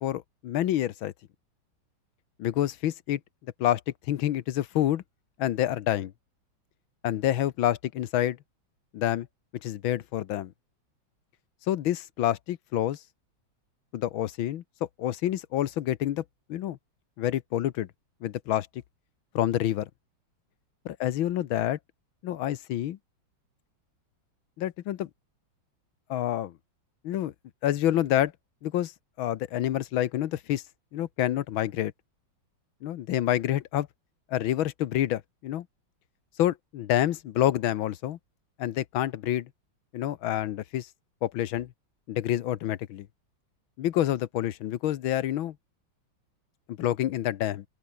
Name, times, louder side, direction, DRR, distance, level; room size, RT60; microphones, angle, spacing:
voice 1, 0.0-1.1 2.4-3.2 3.6-3.8 4.1-5.0 5.4-6.1 7.0-8.4 8.9-9.3 9.6-10.5 11.7-13.0 13.9-14.6 15.0-16.2 16.5-16.8 17.2-17.9 18.2-18.7 19.3-19.9 20.8-21.8 22.2-23.0 24.6-25.1 26.1-26.5 27.0-27.3 27.6-28.3 28.6-28.9 29.2-30.6 30.9-31.9 32.8-33.9 34.3-35.6 36.4-38.2 38.6-39.5 39.9-40.9 41.2-41.7 42.1-43.1 43.8-45.5 46.8-47.6, left 12 dB, 85° left, 1.7 m, -27 dB
open air
omnidirectional pair, 2.2 m